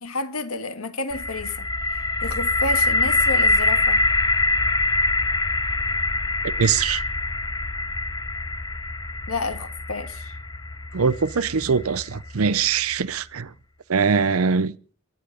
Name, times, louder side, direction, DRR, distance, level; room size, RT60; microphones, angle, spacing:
voice 1, 0.0-4.0 9.3-10.3, left 3 dB, 85° left, 1.8 m, -30 dB
sound 1, 1.1-12.9, left 2 dB, 20° left, 0.8 m, -24 dB
voice 2, 6.6-7.0 10.9-13.5 13.9-14.7, right 5 dB, 85° right, 0.6 m, -22 dB
23.0 x 9.9 x 5.0 m
head